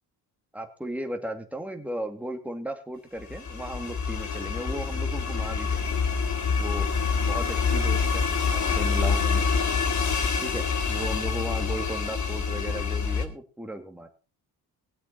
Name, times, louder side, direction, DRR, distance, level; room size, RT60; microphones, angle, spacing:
voice 1, 0.5-6.0 6.6-9.5 10.4-14.1, right 1 dB, 5° right, 4 dB, 2.5 m, -36 dB
sound 1, 3.2-13.2, left 5 dB, 45° left, 2.3 m, -26 dB
20.5 x 8.2 x 4.2 m, 0.34 s
cardioid pair, 115°, 41 cm